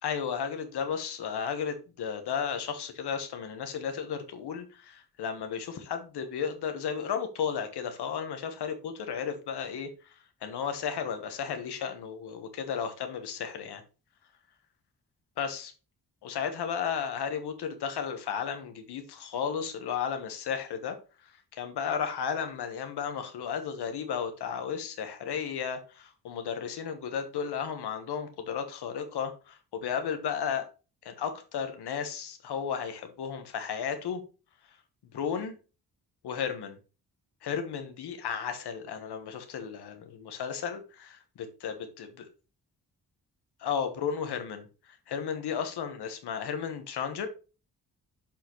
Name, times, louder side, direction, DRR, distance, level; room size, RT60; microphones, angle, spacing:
voice 1, 0.0-13.8 15.4-15.7 16.2-21.0 21.2-30.7 31.0-34.2 35.1-35.6 36.2-36.8 37.4-42.1 43.6-47.3, left 7 dB, 85° left, 1.4 m, -34 dB
6.8 x 5.8 x 3.1 m
cardioid pair, 55°, 38 cm